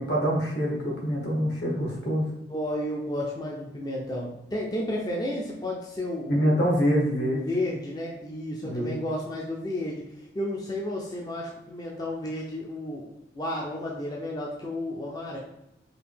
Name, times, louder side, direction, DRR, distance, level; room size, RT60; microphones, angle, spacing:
voice 1, 0.0-2.3 6.3-7.4 8.6-9.0, equal, 65° left, -3 dB, 1.5 m, -25 dB
voice 2, 2.5-6.6 7.3-15.4, left 1 dB, 20° left, -2 dB, 0.4 m, -32 dB
5.0 x 2.7 x 3.3 m, 0.87 s
head